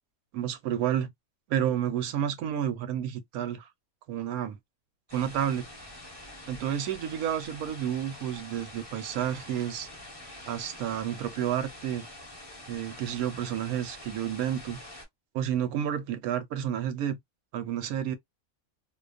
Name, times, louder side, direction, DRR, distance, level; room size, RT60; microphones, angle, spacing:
voice 1, 0.3-1.1 1.5-3.7 4.1-4.6 5.1-5.7 6.5-9.9 10.5-12.1 12.7-14.8 15.3-17.2 17.5-18.2, right 10 dB, 90° right, 1.1 m, -30 dB
sound 1, 5.1-15.1, left 1 dB, 20° left, 1.0 m, -46 dB
2.6 x 2.2 x 2.3 m
omnidirectional pair, 1.5 m